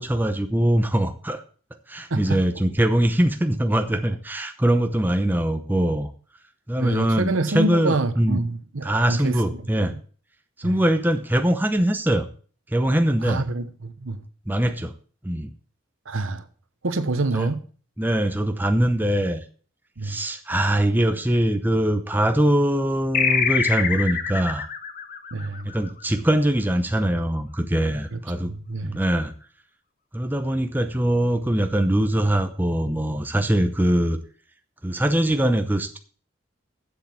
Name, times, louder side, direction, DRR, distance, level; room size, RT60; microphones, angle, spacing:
voice 1, 0.0-1.4 1.9-6.1 6.7-8.4 8.8-9.9 10.6-12.3 12.7-13.4 14.5-14.9 15.2-15.5 17.3-17.5 18.0-19.4 20.0-24.7 25.6-28.5 28.8-29.3 30.1-34.2 34.8-36.0, right 1 dB, 10° right, 0.7 m, -22 dB
voice 2, 6.8-9.4 9.8-9.9 10.6-10.7 13.2-14.2 16.1-16.4 16.8-17.6 20.0-20.2 25.3-25.7 28.1-28.2 28.5-29.0, right 2 dB, 75° right, 0.9 m, -27 dB
sound 1, 23.1-26.2, left 7 dB, 40° left, 0.8 m, -25 dB
7.6 x 7.6 x 7.2 m
head